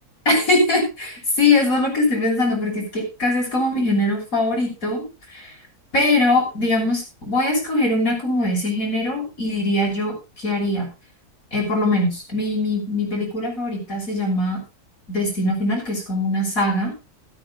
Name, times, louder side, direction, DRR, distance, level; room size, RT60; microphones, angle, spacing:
voice 1, 0.3-5.0 5.3-5.4 5.9-10.1 10.4-10.9 11.5-14.6 15.1-16.9, left 2 dB, 60° left, 1 dB, 6.8 m, -21 dB
13.5 x 12.5 x 4.0 m, 0.30 s
omnidirectional pair, 1.6 m